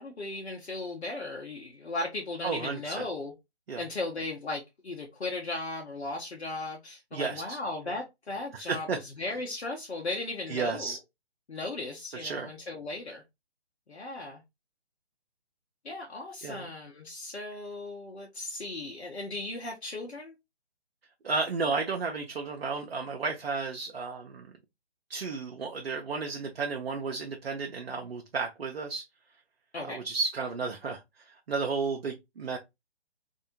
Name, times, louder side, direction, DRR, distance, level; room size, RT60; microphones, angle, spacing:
voice 1, 0.0-3.3 3.8-10.9 11.5-13.2 13.9-14.4 15.8-20.3 29.7-30.1, left 2 dB, 85° left, 0.8 m, -36 dB
voice 2, 2.4-2.9 3.7-3.8 7.1-7.6 8.5-9.0 10.5-11.0 12.1-12.5 16.4-16.7 21.2-24.5 25.1-29.1 29.9-32.6, right 4 dB, 65° right, 0.6 m, -33 dB
2.7 x 2.2 x 2.7 m
figure-of-eight pair, 145°, 32 cm